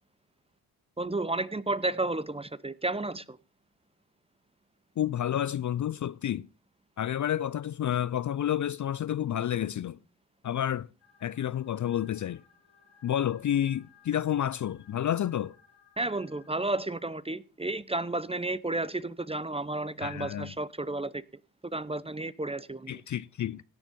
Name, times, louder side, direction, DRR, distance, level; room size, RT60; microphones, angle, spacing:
voice 1, 1.0-3.4 16.0-21.2 21.7-23.0, right 2 dB, 15° right, 0.7 m, -32 dB
voice 2, 5.0-6.5 7.0-10.0 10.4-10.9 11.2-12.4 13.0-15.6 20.0-20.5 22.9-23.6, left 10 dB, 40° left, 0.5 m, -30 dB
sound 1, 11.0-16.5, left 7 dB, 75° left, 3.6 m, -61 dB
17.0 x 6.2 x 5.2 m
supercardioid pair, 55°, 45 cm